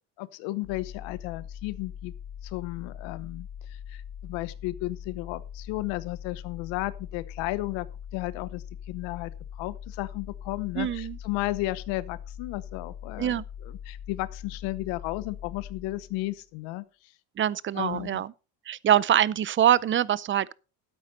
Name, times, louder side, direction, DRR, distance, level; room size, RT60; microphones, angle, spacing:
voice 1, 0.2-2.1 2.4-7.9 8.1-16.8 17.7-18.2, left 19 dB, 80° left, 1.0 m, -34 dB
sound 1, 0.6-16.4, left 8 dB, 60° left, 1.7 m, -42 dB
voice 2, 10.8-11.2 13.2-13.4 17.4-18.3 18.7-20.5, right 10 dB, 30° right, 0.5 m, -24 dB
12.5 x 9.0 x 4.1 m
cardioid pair, 110°, 44 cm